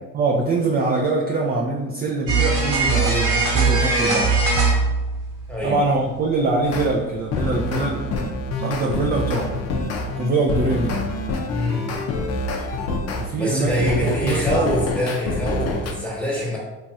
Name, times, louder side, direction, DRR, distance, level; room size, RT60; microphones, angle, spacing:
voice 1, 0.1-4.4 5.6-8.1 8.6-9.6 10.2-11.1 13.2-14.7, right 2 dB, 30° right, -1 dB, 0.4 m, -23 dB
sound 1, 2.3-5.6 5.9-6.0 6.8-6.9, right 3 dB, 60° right, 1.1 m, -20 dB
sound 2, 6.6-6.9 7.3-13.3 13.7-15.9, left 2 dB, 50° left, 0.5 m, -26 dB
voice 2, 11.5-11.8 13.4-16.6, equal, 5° left, -5 dB, 1.2 m, -25 dB
3.0 x 2.8 x 2.3 m, 1.1 s
supercardioid pair, 75°, 34 cm